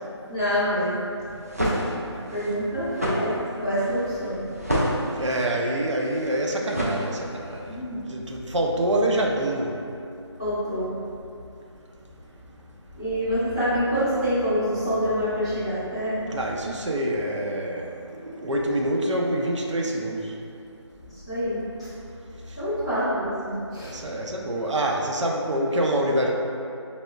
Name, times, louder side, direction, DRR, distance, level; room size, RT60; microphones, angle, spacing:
voice 1, 0.3-1.0 1.2-4.4 7.6-8.2 10.4-11.0 12.9-16.3 21.1-21.9 22.5-23.9, equal, 10° left, -15 dB, 0.6 m, -27 dB
sound 1, 1.3-7.6, equal, 35° right, 0.3 m, -29 dB
voice 2, 5.2-9.8 16.3-20.4 22.5-22.6 23.7-26.3, right 1 dB, 85° right, 0 dB, 0.5 m, -26 dB
5.4 x 2.0 x 2.3 m, 2.6 s
figure-of-eight pair, 180°, 15 cm